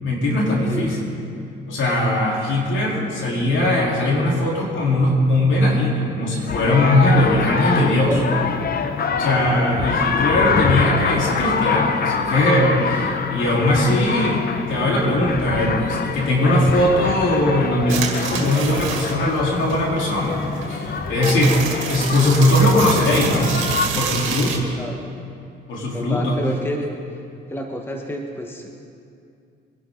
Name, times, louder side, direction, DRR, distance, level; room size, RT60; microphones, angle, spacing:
voice 1, 0.0-1.1 1.7-8.2 9.2-20.4 20.6-21.6 21.9-23.5 23.9-24.8 25.7-26.4, left 1 dB, 75° left, -3 dB, 3.7 m, -20 dB
sound 1, 6.5-23.9, left 5 dB, 50° left, 0.9 m, -25 dB
voice 2, 8.0-8.4 24.7-25.0 25.9-26.9 27.5-28.7, equal, 10° left, 2 dB, 1.4 m, -28 dB
sound 2, 17.9-19.4 19.7-24.6, right 6 dB, 90° right, 1.9 m, -28 dB
23.0 x 11.5 x 3.9 m, 2.5 s
cardioid pair, 90°, 20 cm